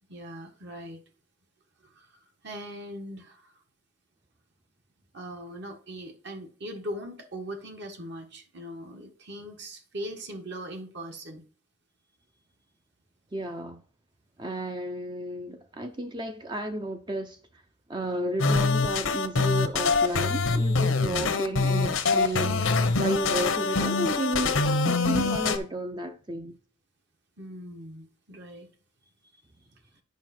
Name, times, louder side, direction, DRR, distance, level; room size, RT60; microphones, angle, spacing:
voice 1, 0.1-1.0 1.8-2.1 2.4-3.5 5.1-11.4 27.4-28.7, equal, 55° right, 1.5 m, -40 dB
voice 2, 13.3-13.8 14.4-17.4 17.9-26.5, right 1 dB, 20° right, 0.6 m, -32 dB
sound 1, 18.4-25.6, left 4 dB, 75° left, 0.9 m, -24 dB
9.3 x 5.6 x 4.3 m
head